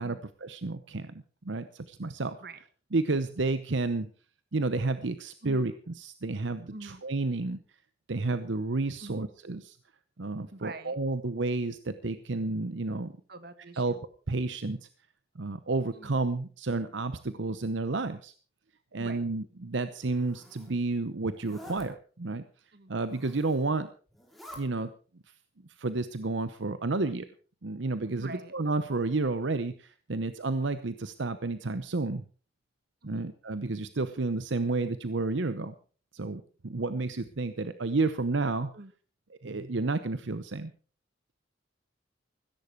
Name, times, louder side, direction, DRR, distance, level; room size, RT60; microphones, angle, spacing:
voice 1, 0.0-2.4 2.9-4.1 4.5-7.6 8.1-9.8 10.2-13.2 13.8-13.9 14.3-14.9 15.4-18.3 18.9-22.4 22.9-23.9 24.6-24.9 25.8-27.3 27.6-32.2 33.0-35.7 36.1-38.7 39.4-40.7, right 3 dB, 75° right, 12 dB, 0.8 m, -31 dB
voice 2, 6.7-7.0 9.0-9.2 10.5-11.0 13.3-14.0 15.9-16.2 19.0-19.3 22.7-22.9 28.1-28.5 33.0-33.3 38.7-38.9, right 2 dB, 55° right, 11 dB, 1.7 m, -45 dB
Zipper (clothing), 20.0-20.7 21.3-21.9 23.0-23.7 24.1-24.6, left 1 dB, ahead, 3.9 m, -49 dB
16.0 x 13.5 x 4.6 m, 0.39 s
head